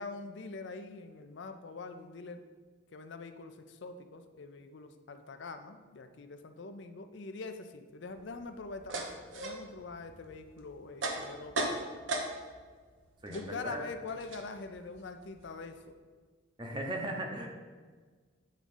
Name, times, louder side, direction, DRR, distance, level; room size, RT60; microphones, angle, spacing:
voice 1, 0.0-2.4 2.9-12.0 13.3-15.9 16.7-16.8, left 3 dB, 65° left, 8 dB, 0.5 m, -44 dB
sound 1, 8.1-12.7 13.0-15.8, right 2 dB, 80° right, 1.0 m, -39 dB
voice 2, 13.2-13.9 16.6-17.5, right 1 dB, 25° right, 2 dB, 0.9 m, -37 dB
8.8 x 3.7 x 5.4 m, 1.5 s
head